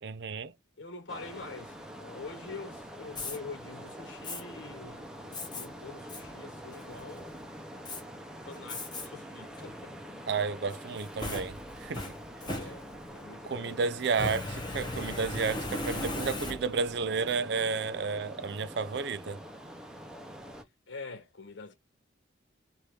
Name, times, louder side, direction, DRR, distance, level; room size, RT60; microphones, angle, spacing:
voice 1, 0.0-0.5 10.3-12.0 13.4-19.4, right 5 dB, 60° right, 0.4 m, -32 dB
voice 2, 0.8-7.4 8.4-9.9 12.4-13.8 20.9-21.7, left 3 dB, 75° left, 0.9 m, -45 dB
sound 1, 1.1-20.6, equal, 5° right, 0.6 m, -45 dB
Fire, 3.2-3.4 4.2-4.4 5.3-5.7 6.1-6.2 6.7-7.2 7.9-8.0 8.7-9.1 9.5-9.6 10.7-13.2 14.1-16.9, left 2 dB, 25° left, 1.0 m, -37 dB
3.3 x 2.5 x 2.9 m
head